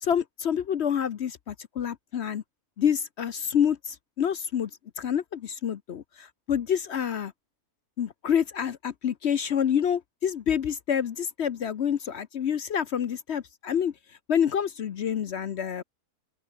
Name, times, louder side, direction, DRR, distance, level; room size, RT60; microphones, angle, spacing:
voice 1, 0.0-2.4 2.8-4.7 5.0-7.3 8.0-13.9 14.3-15.8, left 8 dB, 55° left, 0.9 m, -27 dB
open air
omnidirectional pair, 1.6 m